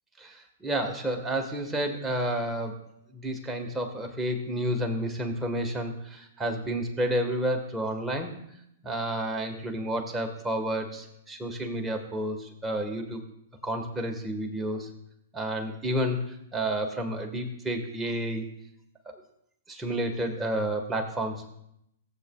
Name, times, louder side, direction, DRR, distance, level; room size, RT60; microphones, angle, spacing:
voice 1, 0.2-2.8 3.1-8.3 8.8-13.2 13.6-14.9 15.3-16.2 16.5-18.5 19.7-21.5, right 1 dB, 10° right, 3 dB, 1.4 m, -30 dB
17.0 x 8.2 x 2.3 m, 0.77 s
hypercardioid pair, 120°, 0 cm